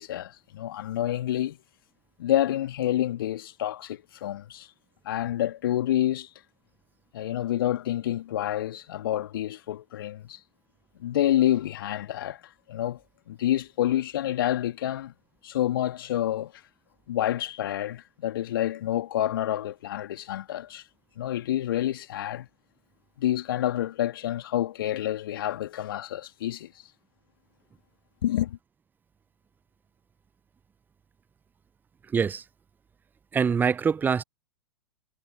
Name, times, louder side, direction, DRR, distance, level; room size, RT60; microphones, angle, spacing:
voice 1, 0.0-1.6 2.2-4.7 5.0-6.3 7.1-10.4 11.0-12.4 12.7-13.0 13.3-15.1 15.4-16.5 17.1-20.8 21.2-22.5 23.2-26.7 28.2-28.6, left 12 dB, 60° left, 2.7 m, -28 dB
voice 2, 32.1-32.4 33.3-34.2, right 6 dB, 15° right, 0.7 m, -24 dB
figure-of-eight pair, 100°, 13 cm